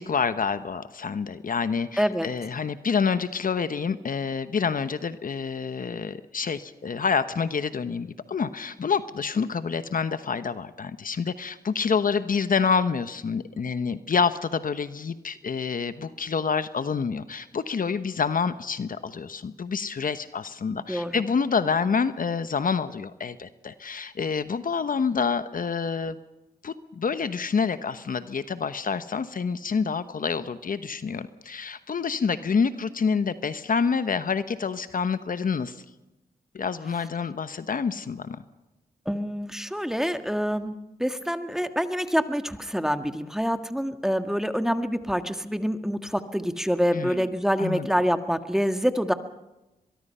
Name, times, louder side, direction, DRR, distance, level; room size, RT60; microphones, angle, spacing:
voice 1, 0.0-26.2 26.6-35.8 36.5-38.4 46.9-47.3 47.6-47.9, left 5 dB, 60° left, 12 dB, 1.1 m, -27 dB
voice 2, 2.0-2.3 20.9-21.2 39.0-40.7 41.0-49.1, equal, 5° right, 8 dB, 1.7 m, -26 dB
23.0 x 22.0 x 5.6 m, 0.98 s
cardioid pair, 50°, 16 cm